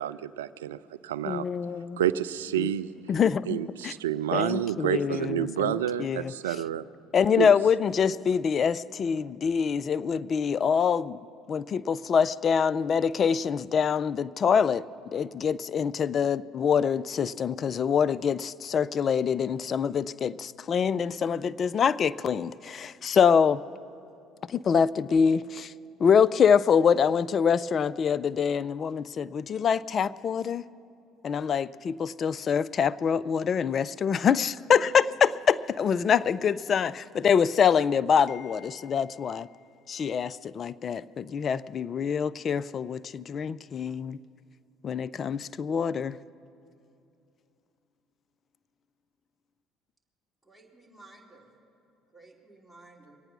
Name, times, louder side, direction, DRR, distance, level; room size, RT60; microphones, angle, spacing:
voice 1, 0.0-1.5 2.0-2.9 3.5-6.8 7.4-7.5, right 11 dB, 90° right, 15 dB, 0.3 m, -29 dB
voice 2, 1.2-2.0 2.6-2.7 3.1-3.6 3.8-3.9 4.3-6.3 7.1-11.2 11.5-14.8 15.1-23.6 24.5-25.7 26.0-30.6 31.2-39.5 39.9-44.2 44.8-46.2, left 7 dB, 45° left, 18 dB, 0.3 m, -25 dB
voice 3, 50.4-51.5 52.1-53.2, right 2 dB, ahead, -3 dB, 3.2 m, -54 dB
23.5 x 8.9 x 6.0 m, 2.6 s
hypercardioid pair, 60°, 0 cm